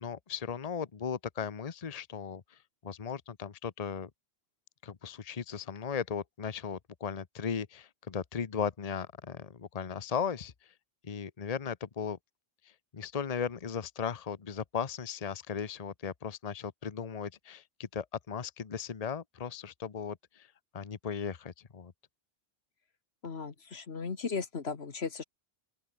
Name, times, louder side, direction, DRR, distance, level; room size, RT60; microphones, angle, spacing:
voice 1, 0.0-4.1 4.8-10.5 11.0-12.2 12.9-20.5 20.7-21.9, left 6 dB, 40° left, 1.0 m, -37 dB
voice 2, 23.2-25.2, left 5 dB, 85° left, 1.9 m, -36 dB
open air
omnidirectional pair, 1.0 m